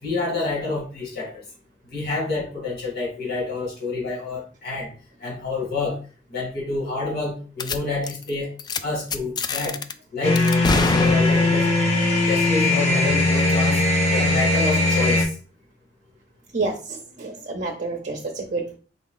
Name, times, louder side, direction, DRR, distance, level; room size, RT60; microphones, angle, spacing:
voice 1, 0.0-1.4 1.9-4.9 5.2-6.0 6.3-8.5 8.8-9.8 10.1-10.4 10.7-11.7 12.2-15.3, left 3 dB, 60° left, -3 dB, 2.2 m, -28 dB
sound 1, 7.6-7.8 8.0-8.3 8.6-8.8 9.1-9.9 10.4-11.7, left 4 dB, 25° left, 0.3 m, -26 dB
sound 2, 10.2-15.2, left 2 dB, 40° left, 1.3 m, -19 dB
voice 2, 16.5-18.8, right 3 dB, 45° right, 2 dB, 0.7 m, -29 dB
3.8 x 3.5 x 3.8 m, 0.39 s
head